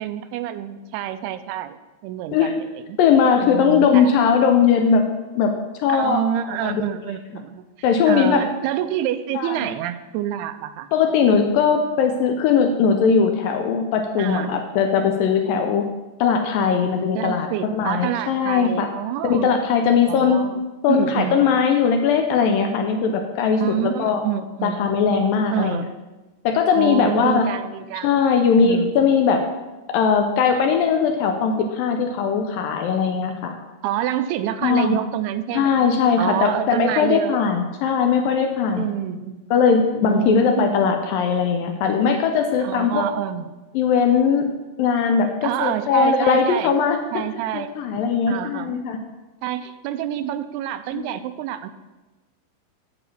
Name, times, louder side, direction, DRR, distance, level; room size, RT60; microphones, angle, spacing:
voice 1, 0.0-1.8 2.0-3.0 3.4-4.1 5.9-7.6 8.1-10.9 14.2-14.6 17.2-19.5 20.1-20.6 20.9-21.4 23.6-24.8 25.5-25.9 26.7-28.1 28.6-28.9 33.8-35.8 36.2-37.4 38.8-39.4 40.0-41.0 42.6-43.5 45.4-46.7 47.1-47.7 48.3-48.8 49.4-51.7, right 11 dB, 85° right, 11 dB, 2.6 m, -27 dB
voice 2, 3.0-5.0 5.3-5.5 5.8-6.8 7.8-8.4 9.3-9.6 10.9-15.8 16.2-18.9 19.2-20.4 20.8-24.2 24.6-25.8 26.4-27.5 28.0-29.4 29.9-33.5 34.6-35.0 35.5-38.9 39.5-43.0 43.7-44.5 44.8-47.0 47.5-49.0 50.9-51.1, left 6 dB, 80° left, 5 dB, 2.2 m, -19 dB
11.0 x 4.9 x 7.0 m, 1.1 s
omnidirectional pair, 4.6 m